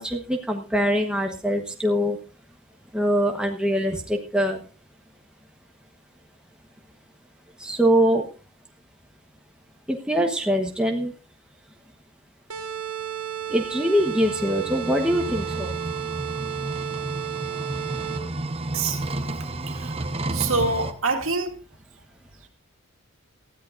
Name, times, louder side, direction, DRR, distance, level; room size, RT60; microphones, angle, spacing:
voice 1, 0.0-2.2 2.9-4.6 7.6-8.3 9.9-11.1 13.5-15.7, equal, 5° right, 2 dB, 1.2 m, -23 dB
sound 1, 12.5-18.4, right 10 dB, 80° right, 1.5 m, -33 dB
sound 2, 14.0-20.9, right 2 dB, 25° right, 0.9 m, -32 dB
voice 2, 20.3-21.6, right 3 dB, 65° right, 4 dB, 2.4 m, -25 dB
19.0 x 13.5 x 2.6 m, 0.37 s
head